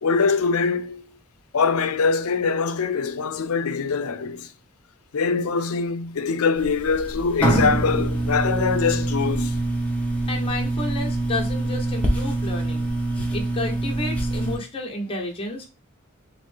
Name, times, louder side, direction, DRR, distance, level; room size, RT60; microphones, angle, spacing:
voice 1, 0.0-1.0 1.5-4.5 5.1-9.6 13.2-13.3, left 5 dB, 70° left, 0.5 m, -23 dB
sound 1, 6.6-14.6, right 2 dB, 5° left, 1.0 m, -25 dB
voice 2, 10.3-12.9 13.3-15.7, left 2 dB, 25° left, 1.3 m, -31 dB
4.1 x 3.1 x 3.4 m
head